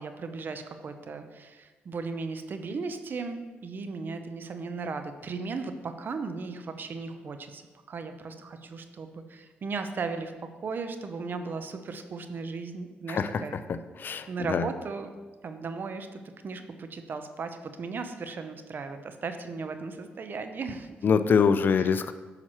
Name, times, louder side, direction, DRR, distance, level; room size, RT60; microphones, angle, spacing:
voice 1, 0.0-7.6 7.9-10.3 10.6-13.6 14.3-15.1 15.4-20.9, right 4 dB, 55° right, 8 dB, 0.7 m, -36 dB
voice 2, 13.1-14.7 21.0-22.1, left 6 dB, 55° left, 11 dB, 0.4 m, -25 dB
8.9 x 5.8 x 3.1 m, 1.3 s
supercardioid pair, 65°, 4 cm